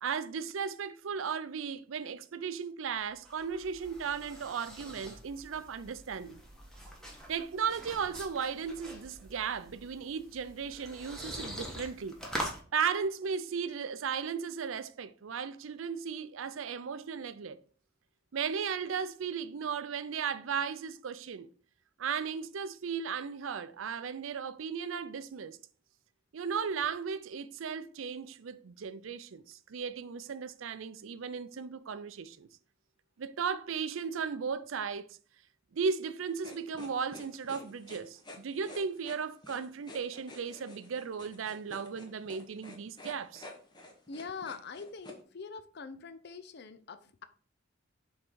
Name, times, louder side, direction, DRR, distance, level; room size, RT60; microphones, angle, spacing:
voice 1, 0.0-6.4 7.3-12.2 12.7-17.6 18.3-21.5 22.0-25.6 26.3-32.5 33.2-35.1 35.7-43.5, right 6 dB, 80° right, 0.5 m, -36 dB
sound 1, 3.0-12.6, equal, 5° left, 1.3 m, -44 dB
sound 2, 36.4-45.2, left 2 dB, 20° left, 1.1 m, -49 dB
voice 2, 44.1-47.2, left 5 dB, 55° left, 0.6 m, -44 dB
6.1 x 3.7 x 4.5 m
head